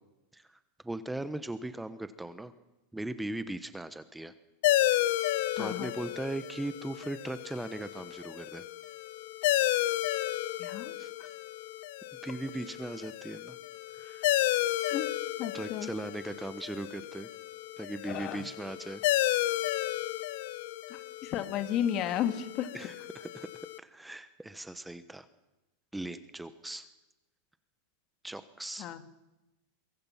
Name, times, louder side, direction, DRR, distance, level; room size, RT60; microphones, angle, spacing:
voice 1, 0.3-2.5 2.9-4.3 5.6-8.6 11.0-11.1 12.2-13.6 13.9-14.4 15.5-17.3 17.8-19.0 22.7-23.5 23.8-25.3 25.9-26.9 28.2-28.9, right 1 dB, 5° right, 12 dB, 1.1 m, -39 dB
sound 1, 4.6-23.8, left 15 dB, 65° left, 1.0 m, -32 dB
voice 2, 5.6-6.0 10.6-11.0 14.8-15.1 15.4-15.9 18.0-18.5 20.9-22.7 28.8-29.0, left 10 dB, 45° left, 9 dB, 2.0 m, -33 dB
23.5 x 23.5 x 5.9 m, 1.0 s
hypercardioid pair, 110°, 0 cm